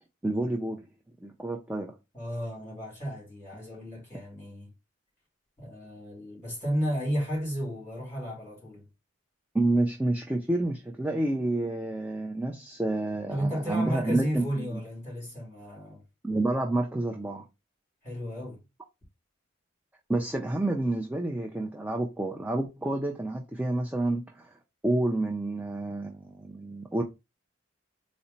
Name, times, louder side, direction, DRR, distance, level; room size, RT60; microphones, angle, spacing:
voice 1, 0.2-0.9 1.2-1.9 9.5-14.8 16.2-17.4 20.1-24.5 24.8-27.0, right 2 dB, 10° right, 0.3 m, -29 dB
voice 2, 2.1-4.7 5.6-8.8 13.3-16.0 18.0-18.6, equal, 15° left, 2.6 m, -33 dB
4.1 x 2.1 x 3.9 m
head